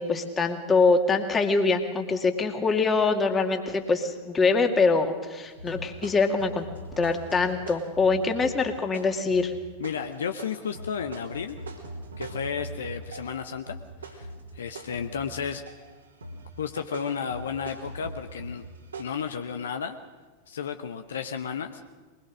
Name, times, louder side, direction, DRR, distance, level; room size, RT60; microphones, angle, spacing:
voice 1, 0.0-6.7 7.0-9.5, left 4 dB, 20° left, 5 dB, 2.2 m, -24 dB
sound 1, 5.6-13.4 13.7-15.9 16.2-19.0, right 1 dB, 75° right, 3.3 m, -41 dB
voice 2, 9.8-11.6 12.2-13.8 14.1-14.3 14.5-15.6 16.6-18.7 19.0-20.0 20.5-21.8, left 7 dB, 65° left, 7 dB, 1.0 m, -33 dB
22.5 x 21.0 x 6.3 m, 1.3 s
figure-of-eight pair, 90°, 0 cm